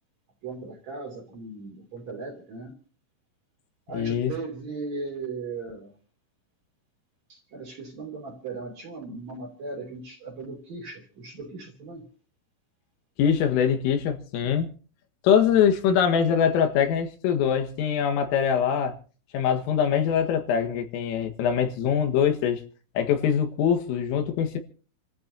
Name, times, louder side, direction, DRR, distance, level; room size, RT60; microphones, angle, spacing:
voice 1, 0.4-2.8 3.9-5.9 7.3-12.1 15.9-16.0, right 3 dB, 40° right, 3.4 m, -37 dB
voice 2, 3.9-4.3 13.2-14.7 15.2-19.0 19.3-22.6 23.0-24.6, left 8 dB, 85° left, 4.2 m, -23 dB
28.0 x 14.0 x 2.8 m
omnidirectional pair, 5.7 m